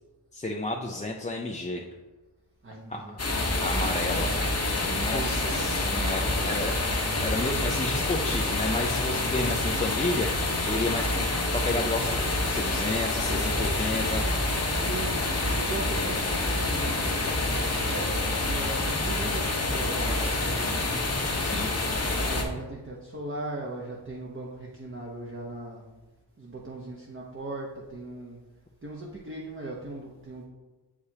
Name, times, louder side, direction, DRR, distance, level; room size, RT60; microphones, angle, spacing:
voice 1, 0.3-1.8 2.9-3.2 3.6-4.4 4.9-6.8 7.2-11.2 11.5-14.6 21.4-21.7, left 2 dB, 15° left, 0 dB, 0.4 m, -32 dB
voice 2, 2.6-3.1 5.0-5.8 9.4-9.9 11.1-11.3 14.5-20.3 20.6-21.2 22.3-25.8 26.4-28.4 28.8-30.4, right 2 dB, 25° right, -3 dB, 0.9 m, -39 dB
sound 1, 3.2-22.4, left 2 dB, 35° left, 0.9 m, -27 dB
7.1 x 4.9 x 2.8 m, 1.2 s
wide cardioid pair, 85°, 45 cm